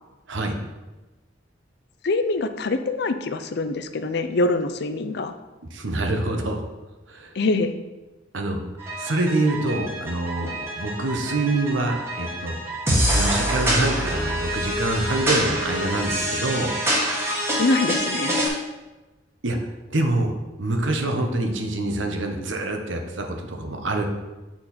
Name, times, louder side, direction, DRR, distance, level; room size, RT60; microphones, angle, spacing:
voice 1, 2.0-5.3 7.4-7.8 17.6-18.4, left 2 dB, 60° left, 10 dB, 0.5 m, -24 dB
voice 2, 5.7-6.6 7.1-7.3 8.3-8.6 9.0-12.6 13.1-16.7 19.4-19.6 19.9-20.3 20.6-24.1, right 2 dB, 90° right, 4 dB, 1.0 m, -25 dB
sound 1, 8.8-18.5, equal, 15° right, 1.3 m, -26 dB
7.9 x 4.4 x 4.2 m, 1.1 s
head